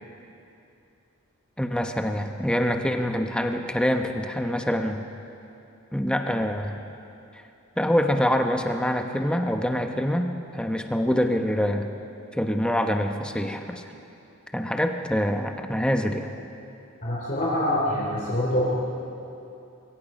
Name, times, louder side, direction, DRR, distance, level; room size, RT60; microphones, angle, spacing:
voice 1, 1.6-5.1 5.9-6.8 7.3-7.4 7.8-11.9 12.3-13.8 14.5-16.3, equal, 5° left, 5 dB, 1.0 m, -25 dB
voice 2, 17.0-18.7, left 1 dB, 35° left, -5 dB, 3.0 m, -25 dB
24.5 x 23.0 x 5.4 m, 2.8 s
head